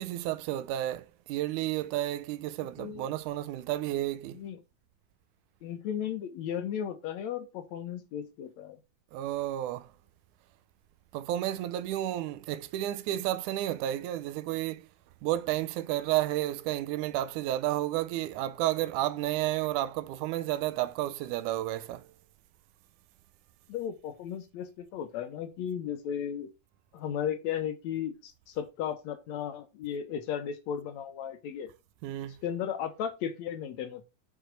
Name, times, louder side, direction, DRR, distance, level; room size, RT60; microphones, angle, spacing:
voice 1, 0.0-4.4 9.1-9.9 11.1-14.9 15.2-22.1 32.0-32.4, right 14 dB, 80° right, 1.9 m, -31 dB
voice 2, 5.6-8.8 23.7-26.5 26.9-31.7 32.4-34.0, left 9 dB, 75° left, 1.8 m, -35 dB
6.2 x 4.6 x 6.4 m
omnidirectional pair, 4.0 m